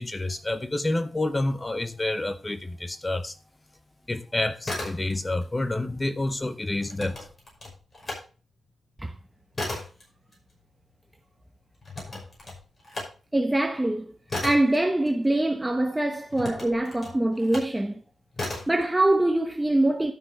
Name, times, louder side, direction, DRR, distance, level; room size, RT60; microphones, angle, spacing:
voice 1, 0.0-3.4 4.1-7.2, left 2 dB, 20° left, 0.7 m, -28 dB
sound 1, 4.6-5.5 5.8-8.2 8.6-15.7 16.3-17.8 18.3-18.8, left 2 dB, 35° left, 5.5 m, -36 dB
voice 2, 13.3-14.1 14.4-17.9 18.7-20.1, right 1 dB, 10° right, 1.0 m, -23 dB
12.0 x 6.1 x 4.8 m
wide cardioid pair, 115°, 0 cm